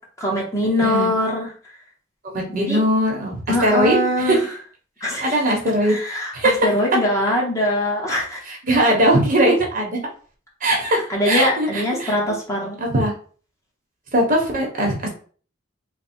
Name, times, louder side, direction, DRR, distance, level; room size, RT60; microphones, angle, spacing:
voice 1, 0.2-1.5 2.5-2.8 3.5-4.4 5.0-5.4 5.8-8.5 11.1-12.8, left 1 dB, 15° left, -3 dB, 1.0 m, -22 dB
voice 2, 0.8-1.1 2.2-4.4 5.2-6.0 6.3-6.5 8.5-10.0 10.6-12.1 12.8-13.1 14.1-15.1, right 1 dB, 45° right, 0 dB, 1.1 m, -20 dB
3.3 x 2.2 x 4.3 m, 0.42 s
head